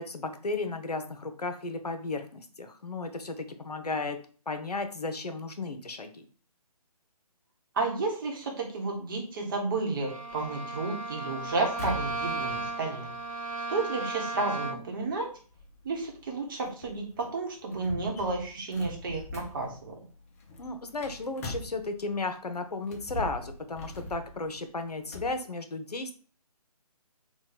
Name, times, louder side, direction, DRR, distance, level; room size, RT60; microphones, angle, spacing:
voice 1, 0.0-4.2 4.5-6.2 20.6-26.1, left 3 dB, 85° left, 7 dB, 0.7 m, -34 dB
voice 2, 7.7-13.1 13.7-15.3 15.8-19.9, right 3 dB, 35° right, 0 dB, 0.9 m, -32 dB
Bowed string instrument, 10.0-15.0, right 2 dB, 60° right, 0.6 m, -35 dB
sound 1, 10.3-22.3 22.8-25.4, left 1 dB, 25° left, 0.5 m, -43 dB
3.0 x 2.2 x 4.0 m, 0.40 s
figure-of-eight pair, 145°, 20 cm